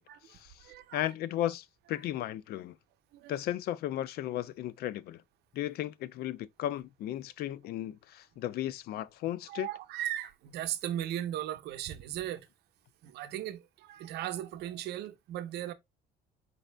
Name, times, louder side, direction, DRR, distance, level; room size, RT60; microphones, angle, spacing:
voice 1, 0.1-1.1 3.1-3.4 9.5-12.5 13.0-15.7, right 12 dB, 75° right, 0.6 m, -37 dB
voice 2, 0.9-2.7 3.3-5.2 5.5-9.7, left 13 dB, 65° left, 0.4 m, -35 dB
5.1 x 2.7 x 3.2 m
cardioid pair, 110°, 17 cm